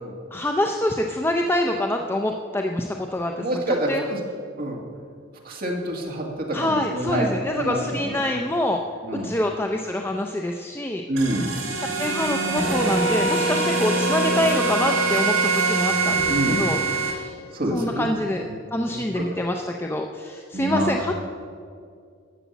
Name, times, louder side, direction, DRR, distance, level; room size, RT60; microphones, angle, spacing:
voice 1, 0.3-3.6 3.9-4.1 6.5-8.8 9.1-11.0 11.8-16.8 17.2-17.4 17.7-18.4 18.7-21.2, left 1 dB, 10° left, 3 dB, 0.4 m, -26 dB
voice 2, 3.3-4.2 4.6-4.8 5.5-8.2 9.0-9.3 11.1-11.5 16.3-16.7 17.5-18.1 18.4-18.5 19.1-19.2 20.5-20.9, right 1 dB, 45° right, -1 dB, 1.9 m, -26 dB
sound 1, 11.2-17.1, right 3 dB, 75° right, 3.3 m, -23 dB
11.0 x 7.3 x 7.1 m, 2.2 s
head